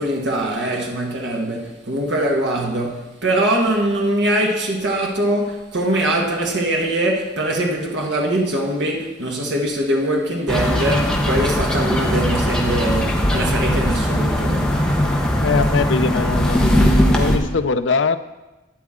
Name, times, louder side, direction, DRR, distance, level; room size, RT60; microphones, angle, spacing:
voice 1, 0.0-14.8, right 1 dB, 70° right, 1.5 m, -22 dB
sound 1, 10.5-17.4, equal, 5° left, 1.0 m, -19 dB
voice 2, 15.4-18.2, left 4 dB, 80° left, 0.5 m, -22 dB
12.0 x 9.4 x 3.7 m
head